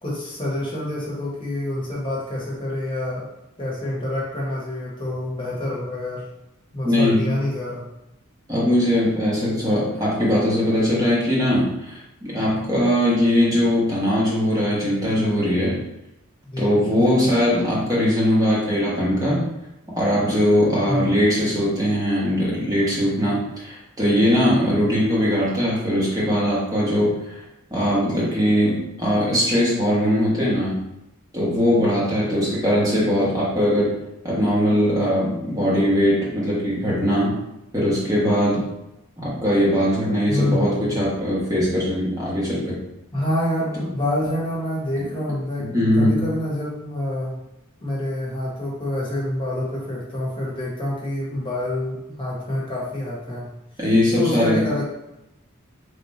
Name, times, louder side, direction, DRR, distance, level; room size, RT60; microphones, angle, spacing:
voice 1, 0.0-3.3 3.6-6.2 6.7-7.9 16.4-17.2 20.9-21.1 40.3-41.0 43.1-47.3 47.8-53.5 54.1-54.8, left 1 dB, 20° left, -6 dB, 1.3 m, -27 dB
voice 2, 6.8-7.3 8.5-15.8 16.6-19.4 19.9-27.4 27.7-30.8 31.3-33.9 34.2-37.3 37.7-38.6 39.2-42.7 45.6-46.2 53.8-54.7, equal, 15° right, -6 dB, 1.2 m, -20 dB
3.5 x 2.8 x 4.1 m, 0.88 s
head